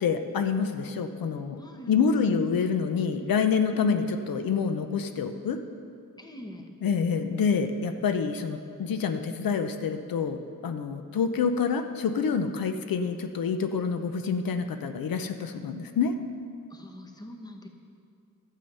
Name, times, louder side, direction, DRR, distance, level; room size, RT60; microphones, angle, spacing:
voice 1, 0.0-1.6 1.9-5.6 6.8-16.1, left 6 dB, 80° left, 8 dB, 0.7 m, -27 dB
voice 2, 1.6-2.3 6.2-6.7 16.7-17.7, left 1 dB, 10° left, 3 dB, 1.0 m, -43 dB
11.5 x 7.5 x 5.5 m, 2.4 s
wide cardioid pair, 125°, 34 cm